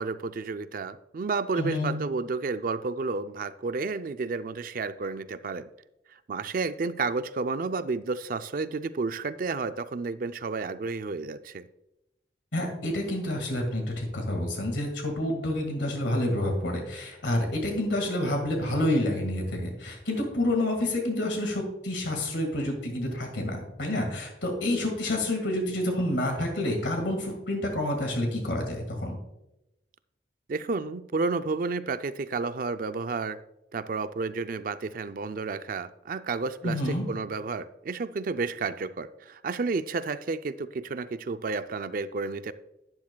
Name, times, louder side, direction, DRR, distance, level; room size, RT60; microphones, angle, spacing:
voice 1, 0.0-5.7 6.3-11.7 30.5-33.4 33.7-42.5, right 4 dB, 50° right, 12 dB, 0.4 m, -31 dB
voice 2, 1.6-2.0 12.5-29.2 36.6-37.0, left 1 dB, 80° left, 3 dB, 1.8 m, -28 dB
11.5 x 9.7 x 2.3 m, 0.91 s
head